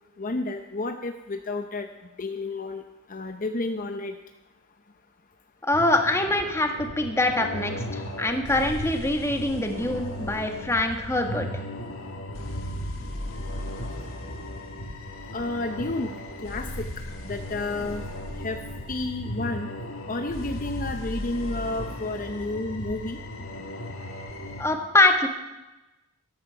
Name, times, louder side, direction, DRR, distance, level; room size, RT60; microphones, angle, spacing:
voice 1, 0.2-1.9 2.2-2.8 3.1-4.1 15.3-16.1 16.4-16.9 17.2-18.1 18.4-18.6 18.9-19.7 20.1-23.2, left 2 dB, 40° left, 6 dB, 0.7 m, -31 dB
voice 2, 5.6-11.5 24.6-25.3, left 2 dB, 15° left, 4 dB, 1.5 m, -24 dB
sound 1, 5.7-24.7, left 1 dB, 75° left, 1.7 m, -36 dB
13.5 x 13.0 x 5.7 m, 1.0 s
head